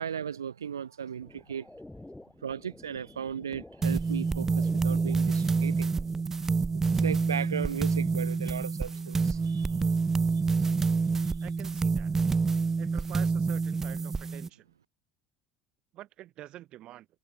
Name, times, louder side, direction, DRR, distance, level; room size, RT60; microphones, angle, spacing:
voice 1, 0.0-1.6 2.4-5.9 7.0-9.7 11.3-11.4, right 8 dB, 80° right, 0.4 m, -36 dB
sound 1, 1.2-6.3, left 1 dB, 5° left, 1.8 m, -50 dB
sound 2, 3.8-14.5, right 4 dB, 20° right, 0.6 m, -27 dB
voice 2, 11.4-12.1 12.8-14.8 15.9-17.1, right 14 dB, 50° right, 4.8 m, -47 dB
figure-of-eight pair, 65°, 2 cm